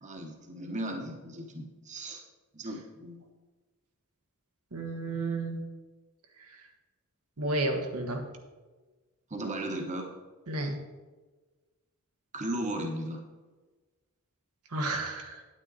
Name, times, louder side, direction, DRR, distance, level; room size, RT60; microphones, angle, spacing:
voice 1, 0.0-2.2 2.5-3.2 9.3-10.0 12.3-13.2, right 1 dB, 35° right, 2 dB, 1.1 m, -36 dB
voice 2, 4.7-5.6 7.4-8.2 10.5-10.7 14.7-15.4, right 2 dB, 80° right, 3 dB, 1.4 m, -31 dB
9.3 x 9.2 x 4.0 m, 1.3 s
head